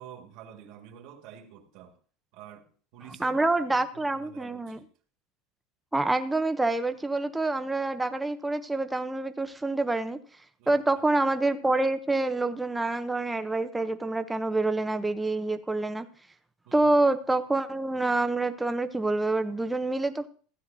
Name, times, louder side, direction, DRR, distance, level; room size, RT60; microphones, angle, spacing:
voice 1, 0.0-2.0 2.3-2.7 2.9-4.9 10.6-11.1 16.7-16.9, right 9 dB, 60° right, 4 dB, 1.8 m, -49 dB
voice 2, 3.2-4.8 5.9-10.2 10.7-16.1 16.7-20.3, right 2 dB, 5° right, 9 dB, 0.6 m, -27 dB
15.0 x 9.5 x 2.7 m, 0.43 s
supercardioid pair, 140°, 0 cm